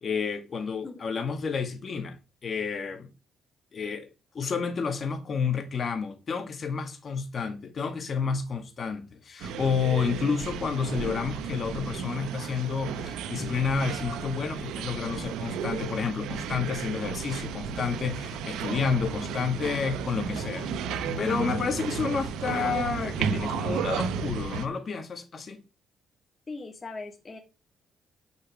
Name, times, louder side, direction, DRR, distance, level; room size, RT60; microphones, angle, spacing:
voice 1, 0.0-3.1 3.7-4.1 4.3-25.6, left 6 dB, 45° left, 2.2 m, -30 dB
sound 1, 9.4-24.7, right 6 dB, 90° right, 1.0 m, -33 dB
voice 2, 26.5-27.4, left 3 dB, 30° left, 2.0 m, -40 dB
10.5 x 5.5 x 5.0 m
cardioid pair, 90°, 0 cm